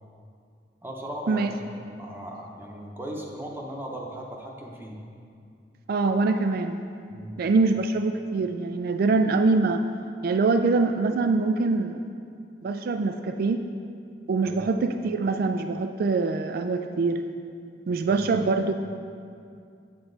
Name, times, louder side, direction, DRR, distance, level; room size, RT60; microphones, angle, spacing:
voice 1, 0.8-1.6 1.8-5.0 7.1-7.4 14.4-14.6 18.1-18.4, equal, 15° right, -1 dB, 0.8 m, -37 dB
voice 2, 5.9-6.8 7.4-9.8 10.2-12.0 12.6-13.6 14.3-17.2 17.9-18.7, right 3 dB, 55° right, 7 dB, 0.3 m, -24 dB
8.1 x 7.9 x 4.0 m, 2.4 s
head